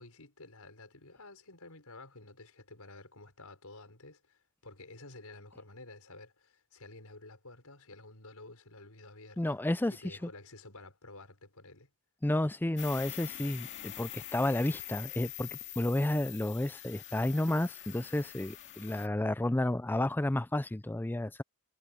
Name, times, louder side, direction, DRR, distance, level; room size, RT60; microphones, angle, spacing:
voice 1, 0.0-9.6 9.9-11.9, left 2 dB, 80° left, 5.6 m, -51 dB
voice 2, 9.4-9.9 12.2-21.4, left 1 dB, 10° left, 0.4 m, -31 dB
sound 1, 12.8-19.1, left 13 dB, 55° left, 2.2 m, -44 dB
head